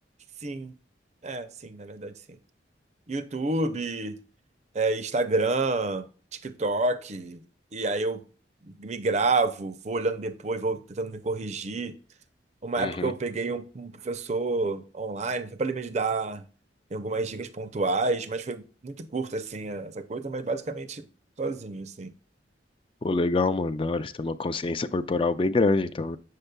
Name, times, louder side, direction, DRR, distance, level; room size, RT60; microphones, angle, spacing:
voice 1, 0.4-0.7 1.2-2.1 3.1-4.2 4.7-6.0 6.3-7.4 7.7-8.2 8.8-11.9 12.6-16.4 16.9-21.1 21.4-22.1, right 3 dB, 35° right, 0.5 m, -29 dB
voice 2, 12.8-13.1 23.0-26.2, left 3 dB, 30° left, 0.3 m, -26 dB
8.0 x 6.6 x 2.2 m
head